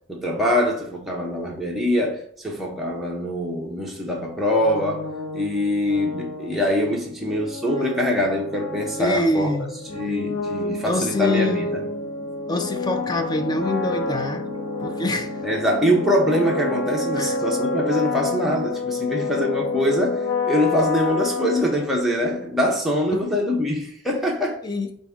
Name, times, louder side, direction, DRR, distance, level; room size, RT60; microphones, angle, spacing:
voice 1, 0.1-5.1 5.3-9.5 9.9-11.8 15.4-24.6, left 1 dB, ahead, 0.8 m, -23 dB
sound 1, 4.6-22.2, left 3 dB, 70° left, 1.0 m, -29 dB
voice 2, 9.0-9.7 10.0-10.1 10.9-11.7 12.5-14.5 14.8-15.4 17.2-17.4 23.1-23.3 24.6-24.9, left 1 dB, 20° left, 0.4 m, -25 dB
5.2 x 2.6 x 3.5 m
head